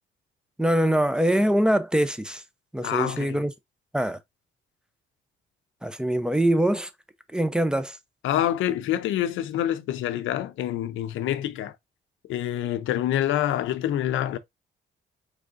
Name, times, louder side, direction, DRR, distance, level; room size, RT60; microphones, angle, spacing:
voice 1, 0.6-2.4 2.7-3.5 3.9-4.2 5.8-6.9 7.3-8.0, right 1 dB, 5° right, 0.6 m, -23 dB
voice 2, 2.8-3.4 8.2-11.8 12.3-14.4, left 12 dB, 85° left, 0.6 m, -26 dB
4.9 x 3.4 x 2.5 m
cardioid pair, 90°, 20 cm